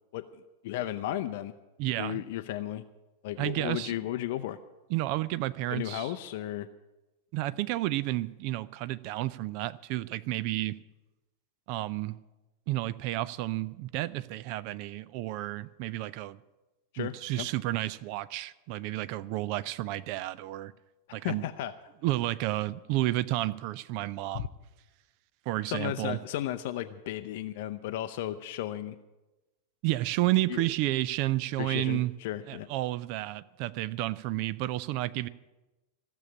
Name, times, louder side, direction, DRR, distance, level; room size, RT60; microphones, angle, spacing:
voice 1, 0.6-1.5 2.0-2.8 3.2-4.6 5.7-6.7 16.9-17.5 21.2-21.7 24.3-24.4 25.7-29.0 30.5-30.6 31.6-32.7, left 13 dB, 50° left, 9 dB, 0.5 m, -34 dB
voice 2, 1.8-2.2 3.4-4.0 4.9-6.1 7.3-10.8 11.7-12.2 12.7-16.4 17.0-20.7 21.1-21.4 22.0-24.5 25.5-26.2 29.8-32.1 32.5-35.3, right 16 dB, 45° right, 18 dB, 0.4 m, -31 dB
15.0 x 7.1 x 9.8 m, 1.0 s
figure-of-eight pair, 90°, 0 cm